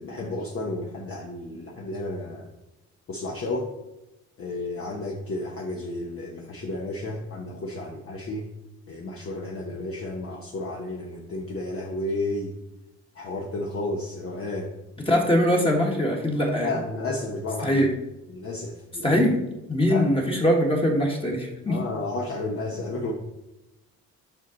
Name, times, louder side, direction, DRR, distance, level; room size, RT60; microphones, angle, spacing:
voice 1, 0.0-2.5 3.1-3.7 4.4-8.5 8.9-12.5 13.1-14.7 16.6-17.8 18.3-19.2 19.9-20.1 21.7-23.1, left 2 dB, 45° left, -1 dB, 1.1 m, -32 dB
voice 2, 15.1-16.7 17.6-17.9 19.0-19.4 19.7-21.8, equal, 20° left, -1 dB, 1.5 m, -22 dB
7.2 x 5.4 x 3.9 m, 0.96 s
cardioid pair, 90°, 30 cm